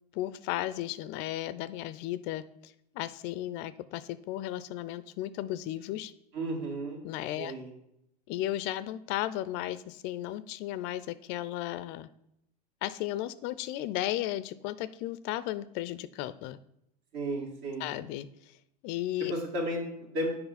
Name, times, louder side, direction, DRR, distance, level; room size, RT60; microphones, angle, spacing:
voice 1, 0.1-6.1 7.0-7.5 8.3-12.1 12.8-16.6 17.8-18.3 18.8-19.3, left 14 dB, 55° left, 16 dB, 0.4 m, -35 dB
voice 2, 6.3-7.0 7.4-7.7 17.1-17.9 19.3-20.3, right 1 dB, 60° right, 1 dB, 2.1 m, -33 dB
6.9 x 5.1 x 4.1 m, 0.78 s
hypercardioid pair, 95°, 21 cm